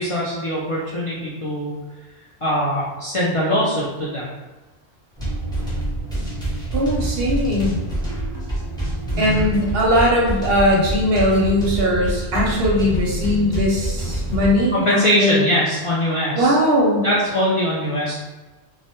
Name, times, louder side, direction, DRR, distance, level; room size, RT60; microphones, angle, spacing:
voice 1, 0.0-1.7 2.4-4.2 9.1-9.5 14.7-16.6 17.0-18.1, equal, 60° left, -7 dB, 0.3 m, -22 dB
sound 1, 5.1-14.6, right 1 dB, 5° left, 0.6 m, -26 dB
voice 2, 6.7-7.8 9.2-15.4 16.3-17.1, equal, 65° right, -2 dB, 0.7 m, -19 dB
2.1 x 2.0 x 2.8 m, 1.2 s
omnidirectional pair, 1.2 m